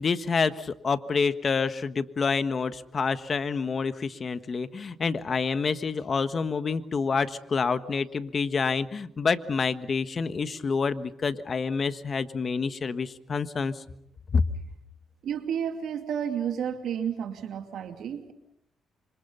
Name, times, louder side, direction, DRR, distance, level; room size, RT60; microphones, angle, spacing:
voice 1, 0.0-13.8 14.3-14.4, left 5 dB, 40° left, 12 dB, 1.4 m, -27 dB
voice 2, 15.2-18.3, right 8 dB, 70° right, 7 dB, 2.5 m, -31 dB
26.5 x 25.5 x 5.6 m, 0.75 s
cardioid pair, 90°, 0 cm